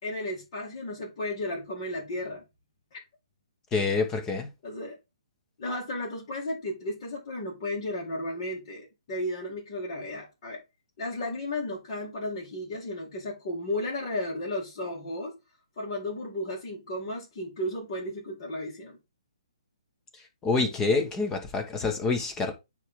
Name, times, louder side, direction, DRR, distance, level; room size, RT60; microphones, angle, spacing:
voice 1, 0.0-2.4 2.9-3.0 4.6-5.0 5.6-10.6 11.0-15.4 15.8-19.0, left 1 dB, 45° left, 2.7 m, -34 dB
voice 2, 3.7-4.5 20.4-22.5, left 4 dB, 15° left, 1.4 m, -27 dB
9.2 x 3.5 x 3.8 m
figure-of-eight pair, 135°, 3 cm